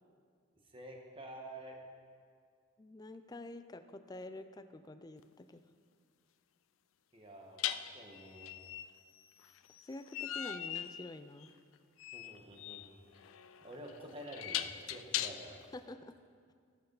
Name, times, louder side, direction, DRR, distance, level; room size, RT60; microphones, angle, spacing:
voice 1, 0.7-1.8 7.1-8.5 12.1-12.9 13.6-15.6, right 1 dB, 25° right, 1 dB, 1.3 m, -49 dB
voice 2, 2.8-5.6 9.8-11.5 15.7-16.1, left 2 dB, 20° left, 9 dB, 0.4 m, -48 dB
sound 1, 5.2-5.3 7.6-15.7, left 11 dB, 85° left, 0.4 m, -41 dB
18.5 x 6.6 x 4.0 m, 2.1 s
head